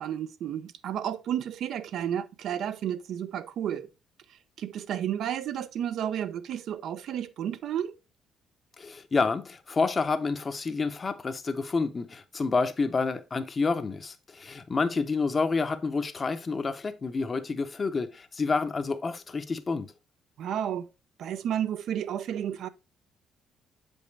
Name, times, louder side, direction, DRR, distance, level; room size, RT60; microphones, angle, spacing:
voice 1, 0.0-3.9 4.3-8.0 20.4-20.9 21.2-22.7, right 10 dB, 65° right, 0.5 m, -32 dB
voice 2, 8.8-19.9, left 4 dB, 25° left, 0.7 m, -29 dB
7.5 x 5.3 x 3.2 m
cardioid pair, 145°, 0 cm